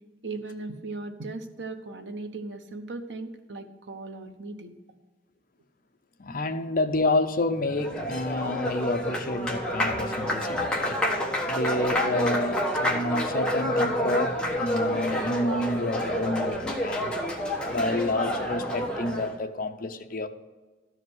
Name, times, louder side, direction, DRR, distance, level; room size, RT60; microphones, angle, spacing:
voice 1, 0.2-4.7, right 3 dB, 75° right, 7 dB, 1.1 m, -37 dB
voice 2, 6.2-11.0 11.4-17.1 17.7-20.3, left 2 dB, 50° left, 7 dB, 0.8 m, -29 dB
Applause, 7.5-19.4, equal, 5° left, 1.3 m, -28 dB
13.0 x 5.0 x 7.9 m, 1.3 s
head